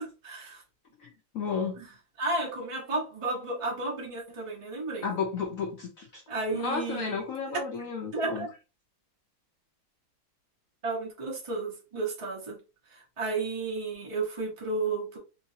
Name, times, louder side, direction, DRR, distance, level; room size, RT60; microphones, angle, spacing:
voice 1, 0.2-0.6 2.2-5.1 6.3-7.2 8.1-8.5 10.8-12.6 13.2-15.2, right 3 dB, 40° right, 0.4 m, -32 dB
voice 2, 1.0-1.8 5.0-6.2 6.5-8.5, left 5 dB, 85° left, 0.7 m, -33 dB
3.0 x 2.9 x 2.7 m
omnidirectional pair, 2.2 m